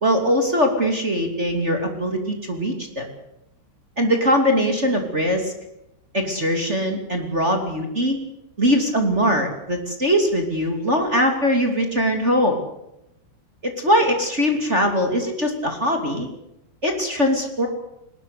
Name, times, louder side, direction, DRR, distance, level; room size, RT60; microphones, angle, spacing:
voice 1, 0.0-3.1 4.0-5.5 6.1-8.2 8.6-12.6 13.6-16.3 16.8-17.7, equal, 20° right, 3 dB, 2.3 m, -21 dB
21.0 x 19.5 x 8.4 m, 0.85 s
omnidirectional pair, 5.1 m